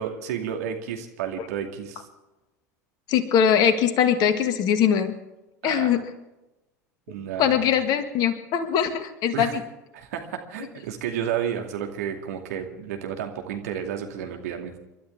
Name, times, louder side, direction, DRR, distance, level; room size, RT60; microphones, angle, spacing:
voice 1, 0.0-2.0 5.6-5.9 7.1-7.6 9.3-9.6 9.9-14.8, right 9 dB, 65° right, 3 dB, 2.4 m, -31 dB
voice 2, 3.1-5.2 5.6-6.0 7.4-9.6, left 8 dB, 45° left, 9 dB, 2.0 m, -21 dB
29.0 x 12.5 x 3.6 m, 0.99 s
figure-of-eight pair, 75°, 9 cm